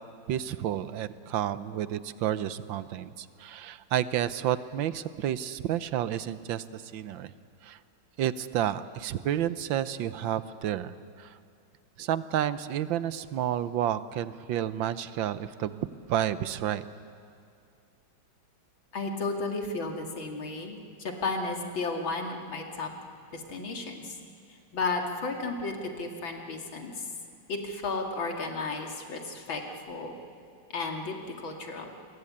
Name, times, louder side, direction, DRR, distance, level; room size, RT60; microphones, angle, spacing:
voice 1, 0.3-7.3 7.6-7.8 8.2-11.3 12.0-15.8 16.1-16.8, right 11 dB, 75° right, 14 dB, 1.5 m, -30 dB
voice 2, 18.9-22.9 23.3-24.2 24.5-27.1 27.5-30.1 30.7-31.9, left 3 dB, 80° left, 3 dB, 3.1 m, -33 dB
28.5 x 22.0 x 8.6 m, 2.4 s
omnidirectional pair, 2.1 m